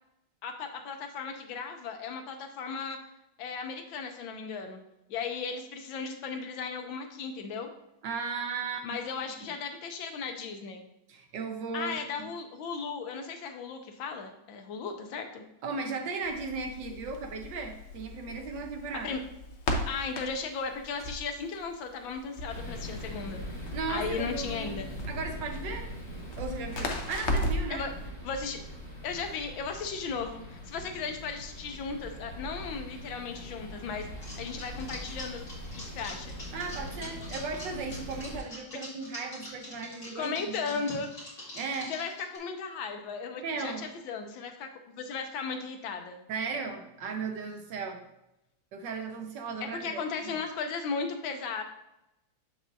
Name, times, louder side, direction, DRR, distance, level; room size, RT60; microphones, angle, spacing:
voice 1, 0.4-3.0 3.4-4.8 5.1-7.7 8.8-10.8 11.7-15.4 19.0-19.2 19.9-23.4 23.9-24.9 27.7-27.9 28.2-28.6 29.0-35.4 35.7-36.3 40.1-41.1 41.9-44.7 44.9-46.2 49.6-51.6, left 5 dB, 85° left, 5 dB, 1.5 m, -36 dB
voice 2, 8.0-9.2 11.1-12.3 15.6-19.1 23.7-24.8 25.1-25.9 26.4-27.9 36.5-40.5 41.5-41.9 43.4-43.8 46.3-48.0 48.7-50.4, right 4 dB, 70° right, 4 dB, 1.4 m, -36 dB
Crackle, 16.2-27.8, left 1 dB, 55° left, 0.8 m, -36 dB
sound 1, 22.5-38.4, equal, 20° left, 2.0 m, -42 dB
sound 2, 34.2-42.4, left 1 dB, 40° left, 2.6 m, -44 dB
7.1 x 5.9 x 2.7 m, 0.87 s
omnidirectional pair, 2.1 m